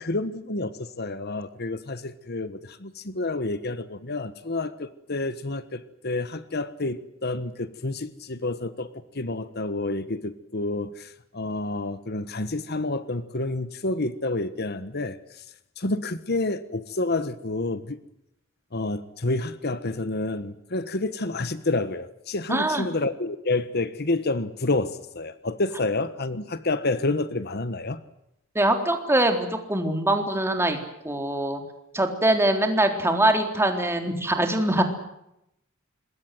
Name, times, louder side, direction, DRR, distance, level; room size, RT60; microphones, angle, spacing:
voice 1, 0.0-15.4 15.8-18.0 18.7-28.0, left 2 dB, 50° left, 13 dB, 1.3 m, -29 dB
voice 2, 22.5-22.9 28.6-30.8 31.0-31.6 31.9-34.8, right 1 dB, 10° right, 5 dB, 3.8 m, -23 dB
26.0 x 21.5 x 7.8 m, 0.82 s
head